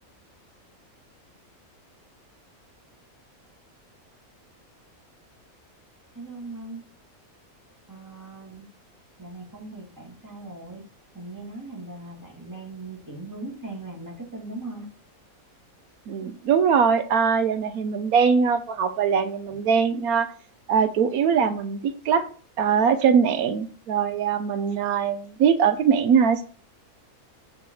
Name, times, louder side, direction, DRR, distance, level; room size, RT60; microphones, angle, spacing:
voice 1, 6.1-6.8 7.9-8.7 9.2-10.9 11.1-14.9 19.5-19.6, right 2 dB, 15° right, -3 dB, 2.5 m, -39 dB
voice 2, 16.1-20.3 20.7-22.3 22.6-26.4, right 6 dB, 80° right, 10 dB, 1.2 m, -22 dB
7.6 x 4.7 x 4.7 m, 0.40 s
omnidirectional pair, 1.5 m